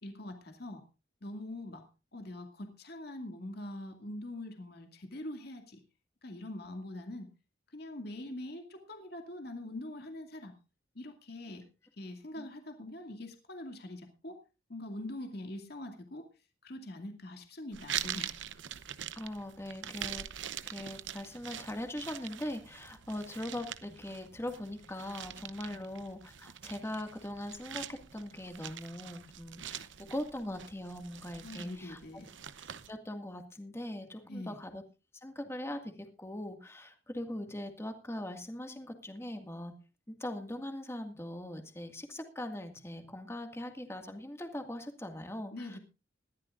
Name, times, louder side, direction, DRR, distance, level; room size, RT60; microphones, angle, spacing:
voice 1, 0.0-0.8 1.2-1.9 2.1-5.8 6.2-7.3 7.7-10.5 10.9-11.6 12.0-14.4 14.7-16.3 16.6-18.3 25.7-25.8 31.4-32.3 34.3-34.6 45.5-45.8, left 1 dB, 55° left, 5 dB, 2.3 m, -43 dB
sound 1, 17.7-32.9, right 10 dB, 75° right, 0.8 m, -44 dB
voice 2, 19.1-20.3 20.6-32.0 32.9-34.8 35.1-39.7 40.1-45.8, left 1 dB, 15° left, 5 dB, 1.9 m, -41 dB
21.0 x 13.5 x 2.5 m, 0.31 s
head